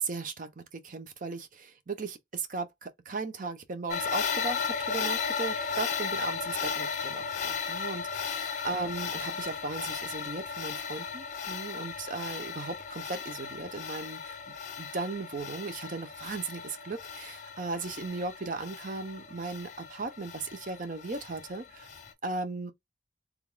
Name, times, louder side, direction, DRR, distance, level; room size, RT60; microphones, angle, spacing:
voice 1, 0.0-21.9 22.2-22.7, right 3 dB, 50° right, 0.7 m, -37 dB
sound 1, 3.9-22.1, left 6 dB, 45° left, 0.7 m, -35 dB
3.5 x 3.5 x 2.2 m
head